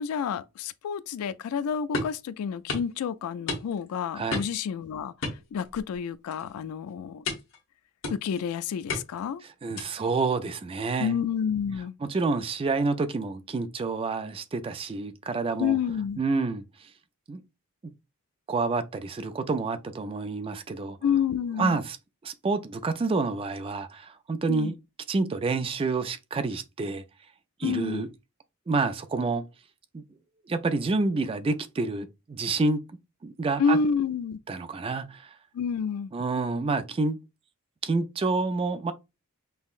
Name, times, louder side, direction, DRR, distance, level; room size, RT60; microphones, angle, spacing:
voice 1, 0.0-5.1 5.5-7.2 8.1-9.4 11.0-12.0 15.6-16.2 21.0-21.8 24.5-24.7 27.6-28.0 33.6-34.4 35.5-36.1, left 6 dB, 75° left, 0.3 m, -29 dB
sound 1, 1.9-2.2 2.7-2.9 3.5-3.9 4.3-4.7 5.2-6.0 6.3-6.6 7.3-7.6 8.0-8.4 8.9-9.3 9.8-10.1, left 3 dB, 60° left, 1.1 m, -33 dB
voice 2, 4.1-4.5 9.6-11.1 12.0-15.8 16.2-16.9 17.3-17.4 18.5-21.0 21.6-22.0 22.2-24.7 25.1-27.0 27.6-28.1 28.7-29.4 29.9-30.0 30.5-32.8 33.2-33.8 34.5-35.3 36.1-37.2 37.8-38.9, right 3 dB, 25° right, 0.3 m, -28 dB
5.4 x 2.0 x 2.4 m
head